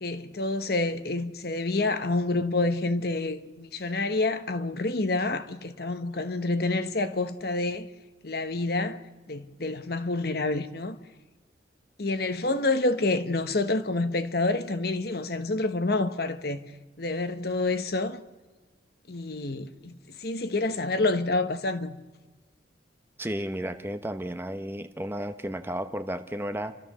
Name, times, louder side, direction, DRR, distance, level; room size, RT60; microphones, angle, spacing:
voice 1, 0.0-7.9 8.2-9.0 9.3-11.0 12.0-16.6 17.0-18.2 19.1-22.0, left 2 dB, 55° left, 1.1 m, -28 dB
voice 2, 23.2-26.8, right 1 dB, 10° right, 0.8 m, -33 dB
30.0 x 13.0 x 6.7 m
head